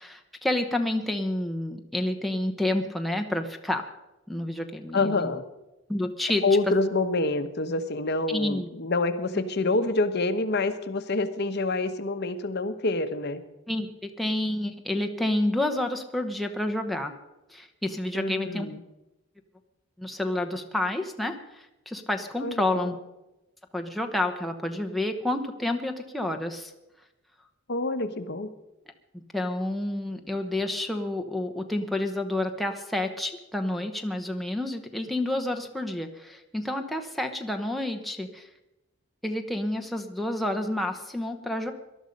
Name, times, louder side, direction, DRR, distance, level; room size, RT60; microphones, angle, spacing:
voice 1, 0.0-3.9 4.3-5.3 5.9-6.4 8.3-8.7 13.7-17.1 17.5-18.7 20.0-23.0 23.7-26.7 29.3-38.5 39.2-41.7, left 1 dB, ahead, 3 dB, 0.9 m, -29 dB
voice 2, 4.9-5.4 6.4-13.4 18.1-18.8 22.4-22.9 27.7-28.5, left 2 dB, 50° left, 9 dB, 1.0 m, -27 dB
18.5 x 12.0 x 5.3 m, 0.97 s
head